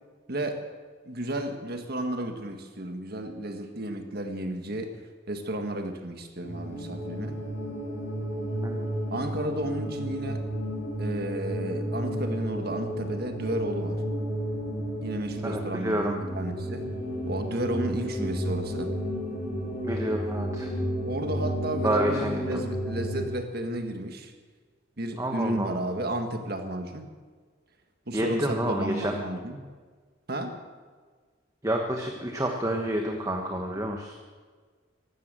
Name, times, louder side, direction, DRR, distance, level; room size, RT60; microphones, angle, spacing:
voice 1, 0.3-0.6 1.0-4.9 5.3-7.4 9.1-10.4 11.0-14.0 15.0-16.8 17.3-18.9 21.1-24.3 25.0-27.1 28.1-29.6 30.3-30.6, right 1 dB, 50° right, 6 dB, 1.7 m, -32 dB
sound 1, 6.4-23.3, equal, 40° left, 5.1 m, -32 dB
voice 2, 15.4-16.1 19.8-20.7 21.8-22.6 25.2-25.7 28.1-29.1 31.6-34.1, right 1 dB, 15° right, 2 dB, 1.2 m, -29 dB
15.5 x 12.0 x 7.6 m, 1.5 s
head